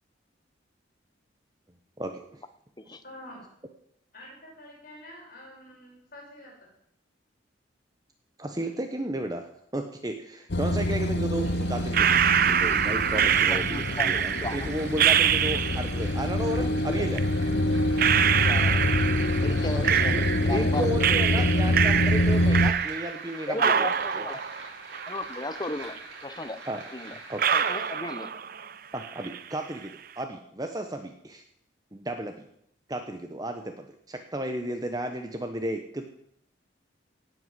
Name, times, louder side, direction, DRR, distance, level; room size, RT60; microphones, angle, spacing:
voice 1, 2.0-2.4 8.4-9.5 9.7-12.2 12.5-17.2 19.8-20.2 20.5-23.7 24.2-24.3 26.7-26.8 27.3-27.4 28.9-31.4 31.9-32.4 32.9-36.1, right 1 dB, 20° right, 5 dB, 1.0 m, -33 dB
voice 2, 3.0-3.4 4.1-6.5, left 1 dB, 50° left, -4 dB, 6.7 m, -47 dB
sound 1, 10.5-22.7, left 1 dB, 65° left, 0.9 m, -26 dB
sound 2, 11.0-27.9, right 3 dB, 75° right, 4.8 m, -46 dB
sound 3, 11.9-16.1 17.2-17.3 18.0-20.7 21.0-23.3 23.6-25.7 26.0-26.1 26.7-26.8 27.4-28.7 29.0-29.5, right 8 dB, 50° right, 0.6 m, -25 dB
voice 3, 13.5-14.6 16.6-17.4 18.4-19.0 19.4-21.0 21.4-21.5 23.5-24.4 25.1-26.6 26.9-27.2 27.5-28.3, left 2 dB, 20° left, 10 dB, 1.0 m, -35 dB
18.0 x 7.9 x 7.6 m, 0.70 s
head